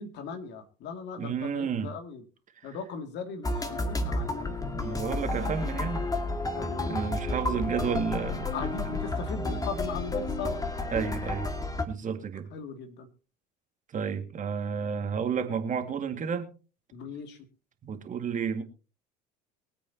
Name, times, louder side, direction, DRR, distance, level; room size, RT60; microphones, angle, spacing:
voice 1, 0.0-2.2 2.6-4.5 6.5-7.7 8.5-10.6 12.5-13.1 16.9-17.4, left 5 dB, 55° left, 7 dB, 2.5 m, -39 dB
voice 2, 1.2-1.9 2.6-2.8 4.0-4.1 4.7-6.1 6.8-8.5 8.8-8.9 10.9-11.5 11.9-12.5 13.9-16.5 17.8-18.6, right 6 dB, 40° right, 7 dB, 2.1 m, -31 dB
sound 1, 3.4-11.8, left 2 dB, 15° left, 2.1 m, -31 dB
23.5 x 8.5 x 2.9 m, 0.34 s
hypercardioid pair, 70°, 21 cm